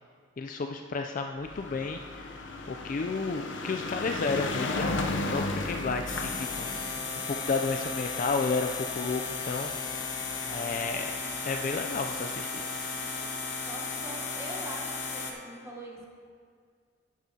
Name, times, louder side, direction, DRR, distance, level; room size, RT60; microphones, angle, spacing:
voice 1, 0.4-2.4 2.7-5.0 5.3-6.9 7.3-9.7 10.5-11.1 11.4-12.6, left 4 dB, 45° left, 4 dB, 0.4 m, -32 dB
sound 1, 1.4-9.9 10.7-10.8 11.0-11.1 11.4-11.5, left 2 dB, 90° left, 0.8 m, -35 dB
sound 2, 6.1-15.3, left 4 dB, 70° left, 1.1 m, -35 dB
voice 2, 13.6-16.1, right 1 dB, 15° right, -1 dB, 1.1 m, -43 dB
11.0 x 10.5 x 2.8 m, 2.1 s
head